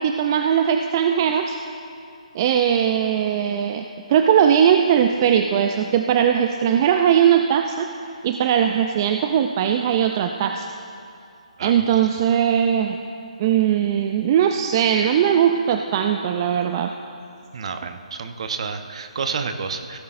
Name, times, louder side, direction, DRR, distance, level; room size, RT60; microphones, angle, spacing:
voice 1, 0.0-1.6 2.3-3.8 4.1-7.9 8.2-10.7 11.6-13.0 13.4-16.9, right 9 dB, 30° right, 6 dB, 0.4 m, -19 dB
voice 2, 17.5-20.0, right 5 dB, 55° right, 7 dB, 0.9 m, -29 dB
16.5 x 12.0 x 2.6 m, 2.5 s
figure-of-eight pair, 145°, 4 cm